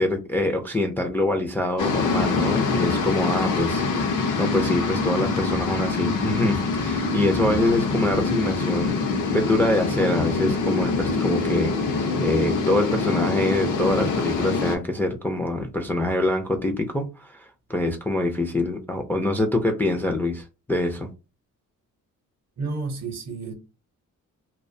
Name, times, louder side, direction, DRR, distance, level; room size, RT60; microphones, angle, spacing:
voice 1, 0.0-21.1, left 1 dB, 5° left, 0.3 m, -25 dB
sound 1, 1.8-14.8, left 4 dB, 75° left, 0.6 m, -24 dB
voice 2, 22.6-23.5, right 4 dB, 55° right, 0.7 m, -31 dB
2.3 x 2.1 x 2.5 m
cardioid pair, 120°, 32 cm